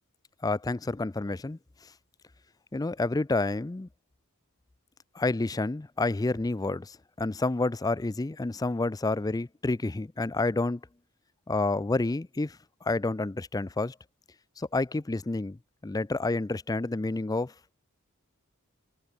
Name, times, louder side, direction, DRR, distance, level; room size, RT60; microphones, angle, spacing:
voice 1, 0.4-1.6 2.7-3.9 5.2-10.8 11.5-13.9 14.6-17.5, left 2 dB, 15° left, 0.4 m, -29 dB
head